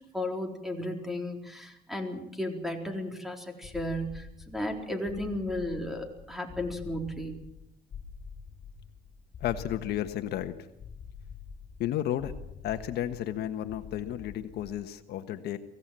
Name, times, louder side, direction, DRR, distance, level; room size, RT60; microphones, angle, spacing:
voice 1, 0.1-7.4, left 1 dB, ahead, 3 dB, 4.1 m, -34 dB
sound 1, 3.6-15.0, left 6 dB, 45° left, 6.2 m, -46 dB
voice 2, 9.4-10.5 11.8-12.3 12.6-15.6, left 11 dB, 75° left, 8 dB, 1.4 m, -32 dB
24.0 x 16.5 x 7.7 m, 0.84 s
cardioid pair, 110°, 17 cm